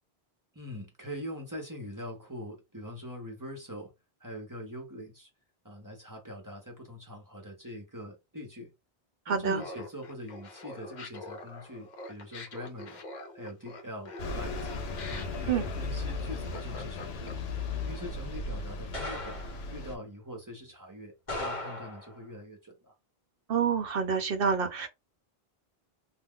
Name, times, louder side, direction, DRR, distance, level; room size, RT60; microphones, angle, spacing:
voice 1, 0.5-3.9 4.2-5.3 5.6-8.7 9.3-13.0 13.3-14.7 15.1-17.3 17.8-19.4 19.7-22.9, equal, 20° right, 0.8 m, -43 dB
voice 2, 9.3-9.6 15.5-15.6 23.5-24.9, right 6 dB, 65° right, 0.9 m, -27 dB
Laughter, 9.5-17.6, left 2 dB, 50° left, 0.7 m, -44 dB
Bus, 14.2-19.9, left 3 dB, 80° left, 0.8 m, -36 dB
sound 1, 15.7-16.1 16.5-16.7 18.9-19.7 21.3-22.2, left 1 dB, 35° left, 1.1 m, -38 dB
2.3 x 2.3 x 3.5 m
omnidirectional pair, 1.1 m